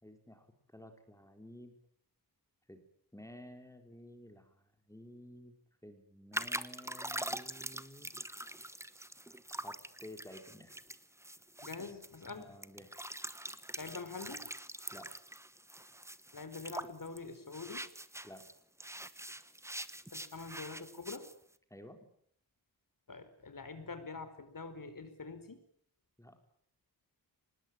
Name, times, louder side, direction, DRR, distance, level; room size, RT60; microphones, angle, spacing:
voice 1, 0.0-1.8 2.7-2.8 3.1-5.6 5.8-8.1 9.6-10.8 12.3-12.9 14.9-15.1 18.2-18.5 21.7-22.0 26.2-26.4, left 1 dB, 10° left, 6 dB, 4.1 m, -53 dB
sound 1, 6.3-18.5 18.8-21.3, right 1 dB, 5° right, 1.1 m, -44 dB
voice 2, 11.6-12.6 13.8-14.5 16.3-17.9 20.1-21.2 23.1-25.6, left 4 dB, 55° left, 10 dB, 4.7 m, -45 dB
25.5 x 20.5 x 8.9 m, 0.63 s
wide cardioid pair, 125°, 38 cm